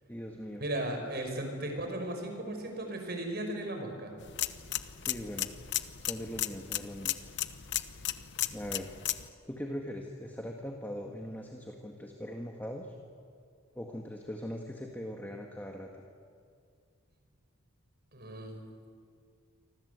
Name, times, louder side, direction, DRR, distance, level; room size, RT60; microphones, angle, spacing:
voice 1, 0.1-0.6 5.0-5.5 6.0-7.3 8.5-8.9 9.5-12.9 13.8-15.9, equal, 10° left, 1 dB, 1.8 m, -40 dB
voice 2, 0.6-4.1 18.1-18.7, right 1 dB, 45° right, 4 dB, 5.5 m, -36 dB
sound 1, 4.2-9.3, left 13 dB, 55° left, 1.0 m, -35 dB
28.5 x 25.0 x 8.3 m, 2.2 s
head